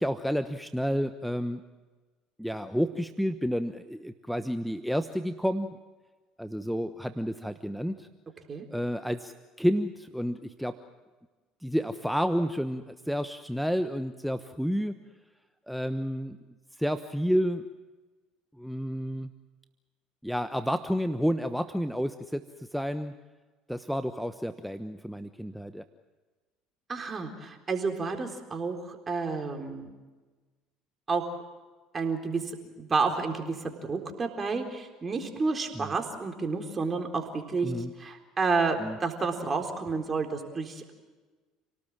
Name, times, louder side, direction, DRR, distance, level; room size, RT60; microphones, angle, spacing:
voice 1, 0.0-1.6 2.4-5.8 6.4-8.1 8.7-10.8 11.6-15.0 15.7-16.4 16.8-17.7 18.6-19.3 20.2-23.1 23.7-25.8 35.7-35.9 37.6-37.9 38.8-39.0, equal, ahead, 9 dB, 1.1 m, -30 dB
voice 2, 26.9-29.9 31.1-31.2 31.9-32.4 32.8-33.6 33.8-37.7 38.0-40.9, right 4 dB, 30° right, 3 dB, 4.0 m, -30 dB
29.5 x 18.5 x 7.5 m, 1.3 s
hypercardioid pair, 65°, 0 cm